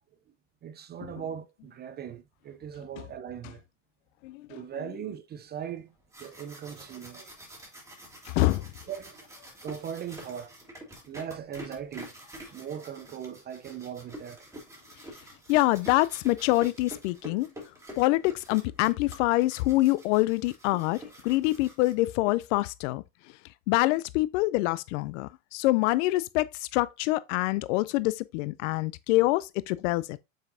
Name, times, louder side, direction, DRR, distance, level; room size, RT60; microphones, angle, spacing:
voice 1, 0.6-3.6 4.5-5.9 6.2-7.3 8.9-9.2 9.6-10.5 11.1-12.1 12.5-14.5, right 8 dB, 25° right, 0.5 m, -39 dB
voice 2, 4.2-4.6 8.2-8.7 15.5-17.5 18.0-23.0 23.7-30.2, left 19 dB, 70° left, 0.5 m, -26 dB
sound 1, 5.9-22.3, equal, 10° right, 3.2 m, -47 dB
7.2 x 5.6 x 2.6 m
hypercardioid pair, 100°, 39 cm